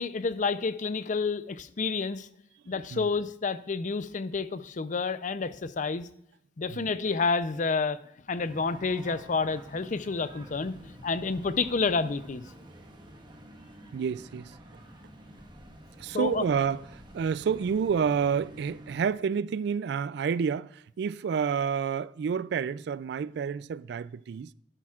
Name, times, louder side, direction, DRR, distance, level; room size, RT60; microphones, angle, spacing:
voice 1, 0.0-2.3 2.7-6.1 6.6-8.0 8.3-10.7 11.0-12.5 16.1-16.4, left 4 dB, 45° left, 0.5 m, -29 dB
sound 1, 8.3-19.1, right 1 dB, 25° right, 1.4 m, -49 dB
voice 2, 13.9-14.5 16.0-24.5, right 6 dB, 65° right, 0.3 m, -29 dB
12.0 x 10.0 x 2.4 m
head